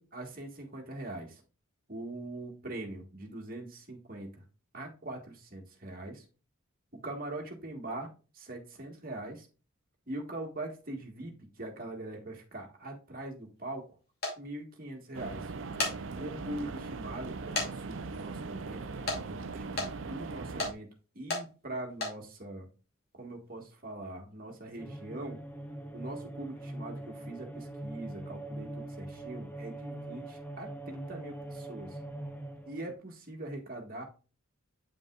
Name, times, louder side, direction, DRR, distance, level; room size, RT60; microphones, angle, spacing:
voice 1, 0.0-1.4 1.9-4.4 4.7-6.3 6.9-9.5 10.1-13.9 14.4-15.5 16.1-20.9 21.1-22.7 23.1-25.4 25.9-32.0 32.7-34.0, right 1 dB, 40° right, 2 dB, 1.6 m, -42 dB
sound 1, 14.2-14.4 15.5-16.0 16.5-16.6 17.5-17.7 18.0-18.1 19.1-19.2 19.8-19.9 20.6-20.7 21.3-21.4 21.9-22.1, left 2 dB, 45° left, 2.5 m, -31 dB
sound 2, 15.1-20.7, right 4 dB, 60° right, 0.5 m, -40 dB
sound 3, 24.8-32.9, right 1 dB, 10° left, 0.5 m, -42 dB
8.7 x 5.3 x 2.4 m, 0.34 s
head